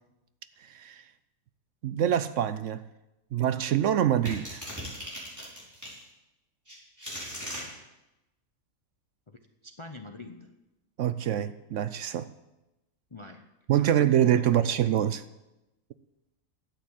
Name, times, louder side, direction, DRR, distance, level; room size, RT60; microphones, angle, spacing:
voice 1, 0.6-1.0 1.8-2.8 3.3-4.7 11.0-12.3 13.7-15.2, right 10 dB, 65° right, 0.9 m, -25 dB
sound 1, 4.3-6.0 6.7-7.6, equal, 10° right, 4.8 m, -38 dB
voice 2, 9.3-10.5 13.1-13.5 13.8-14.1 14.4-14.8, left 2 dB, 35° left, 0.5 m, -46 dB
12.0 x 8.7 x 7.5 m
omnidirectional pair, 1.5 m